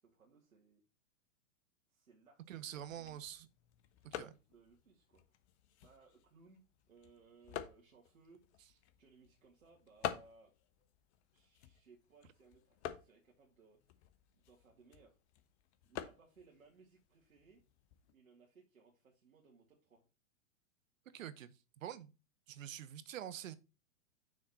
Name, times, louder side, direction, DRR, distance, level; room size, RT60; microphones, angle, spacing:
voice 1, 0.0-0.8 1.9-3.2 4.0-4.2 4.5-5.2 5.8-8.4 9.0-10.5 11.3-14.1 14.4-15.2 15.8-17.6 18.1-20.0, right 4 dB, 85° right, 2.2 m, -65 dB
voice 2, 2.5-3.5 4.0-4.4 21.1-22.1 22.5-23.6, right 11 dB, 70° right, 1.0 m, -46 dB
sound 1, 2.6-18.1, left 11 dB, 55° left, 1.1 m, -50 dB
6.4 x 4.2 x 5.6 m
hypercardioid pair, 110°, 40 cm